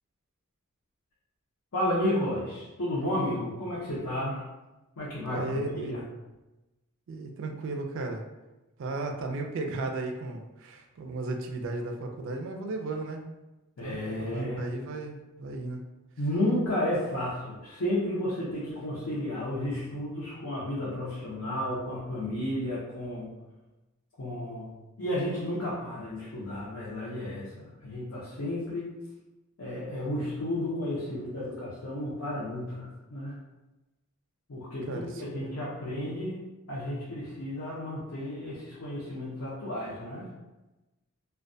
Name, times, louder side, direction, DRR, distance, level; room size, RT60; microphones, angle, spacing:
voice 1, 1.7-4.4 5.0-6.0 13.8-14.6 16.2-23.3 24.2-28.9 29.6-33.4 34.5-36.4 36.7-40.3, left 1 dB, 70° left, -8 dB, 0.7 m, -32 dB
voice 2, 5.3-6.0 7.1-8.2 8.8-13.2 13.8-15.8 34.9-35.6, right 2 dB, 60° right, 4 dB, 0.3 m, -35 dB
2.2 x 2.2 x 2.5 m, 1.0 s
head